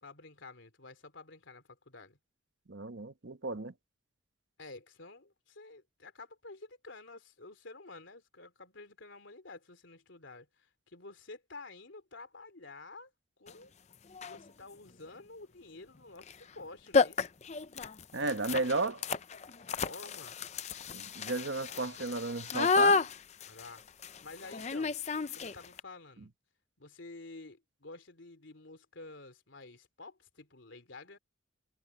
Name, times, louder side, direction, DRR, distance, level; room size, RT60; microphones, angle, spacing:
voice 1, 0.0-2.2 4.6-13.1 13.4-13.7 14.2-17.3 19.8-20.4 23.5-23.8 24.2-25.0 25.3-26.3 26.8-31.2, left 3 dB, 75° left, 3.0 m, -50 dB
voice 2, 2.7-3.7 18.1-19.0 20.9-23.0, right 3 dB, 70° right, 1.1 m, -34 dB
sound 1, 13.5-13.6 14.1-14.5 16.2-16.4 16.6-16.7 16.9-25.8, left 4 dB, 35° left, 0.5 m, -32 dB
head